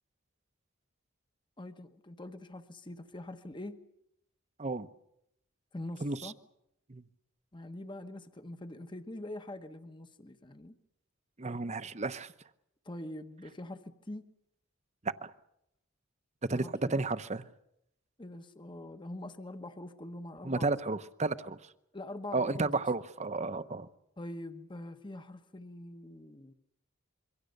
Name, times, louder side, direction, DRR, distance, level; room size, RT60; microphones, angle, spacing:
voice 1, 1.6-3.8 5.7-6.4 7.5-10.8 12.8-14.2 16.5-16.9 18.2-20.7 21.9-22.8 24.2-26.5, left 1 dB, 25° left, 1.2 m, -44 dB
voice 2, 6.0-6.3 6.9-7.0 11.4-12.3 15.2-15.3 16.5-17.5 20.4-21.7 22.3-23.9, right 3 dB, 35° right, 0.9 m, -32 dB
27.0 x 24.0 x 6.6 m
head